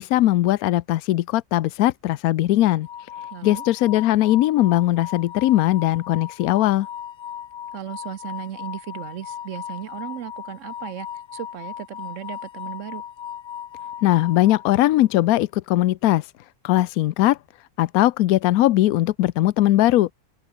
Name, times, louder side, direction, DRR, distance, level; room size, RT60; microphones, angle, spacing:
voice 1, 0.0-2.9 3.4-6.9 14.0-16.2 16.6-17.4 17.8-20.1, left 15 dB, 80° left, 1.1 m, -19 dB
sound 1, 2.8-15.1, left 10 dB, 65° left, 0.5 m, -37 dB
voice 2, 3.3-3.6 7.7-11.1 11.3-13.0, right 10 dB, 65° right, 1.0 m, -36 dB
open air
omnidirectional pair, 1.5 m